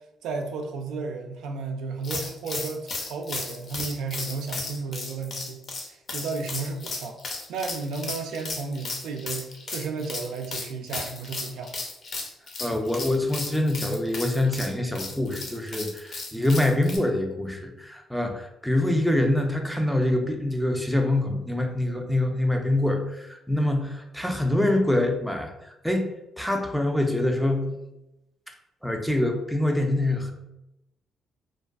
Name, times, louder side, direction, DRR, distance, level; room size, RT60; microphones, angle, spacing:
voice 1, 0.2-7.2 7.5-11.7, right 4 dB, 85° right, 3 dB, 0.3 m, -33 dB
sound 1, 2.0-17.0, left 3 dB, 50° left, 0.5 m, -35 dB
voice 2, 12.6-25.5 25.8-26.1 26.4-27.8 28.8-30.3, left 1 dB, ahead, 3 dB, 0.4 m, -25 dB
2.4 x 2.3 x 2.3 m, 0.90 s
cardioid pair, 90°, 0 cm